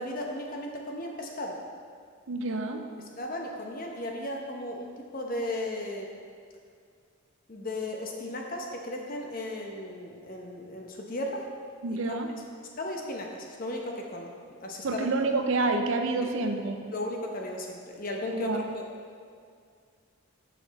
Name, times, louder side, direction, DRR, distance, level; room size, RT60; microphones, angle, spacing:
voice 1, 0.0-1.6 3.2-6.1 7.5-11.5 11.9-12.0 12.8-14.3 14.6-15.1 16.9-18.8, left 1 dB, 40° left, 1 dB, 0.8 m, -35 dB
voice 2, 2.3-2.9 11.8-12.3 14.8-16.8 18.3-18.7, right 3 dB, 60° right, 5 dB, 0.6 m, -28 dB
7.8 x 5.9 x 4.1 m, 2.2 s
head